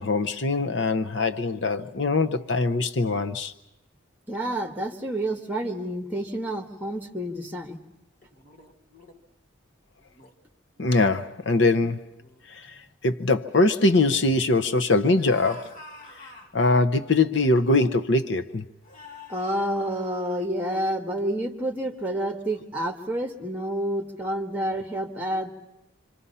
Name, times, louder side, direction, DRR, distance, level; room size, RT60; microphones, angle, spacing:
voice 1, 0.0-3.5 10.8-12.1 12.5-15.7 16.2-18.6, left 2 dB, 55° left, 0.7 m, -23 dB
voice 2, 4.3-7.8 19.3-25.5, right 1 dB, 10° right, 1.8 m, -29 dB
sound 1, 8.2-9.2 10.0-10.3 10.8-11.1 11.8-11.9 12.2-12.5 13.2-13.4 15.2-16.6 17.6-17.7 18.8-20.5, left 2 dB, 40° left, 2.0 m, -47 dB
26.5 x 26.0 x 5.6 m
head